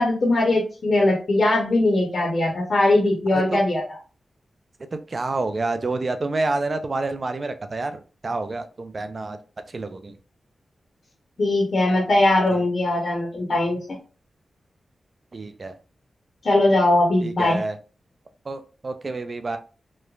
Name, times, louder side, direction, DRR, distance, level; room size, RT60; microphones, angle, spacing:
voice 1, 0.0-3.8 11.4-14.0 16.4-17.6, left 2 dB, 50° left, -1 dB, 0.6 m, -20 dB
voice 2, 3.3-3.6 5.1-9.4 9.7-10.2 12.5-12.6 15.3-15.7 17.2-17.8 18.5-19.6, right 3 dB, 35° right, 8 dB, 0.3 m, -28 dB
3.0 x 2.1 x 2.3 m, 0.35 s
wide cardioid pair, 145°, 0 cm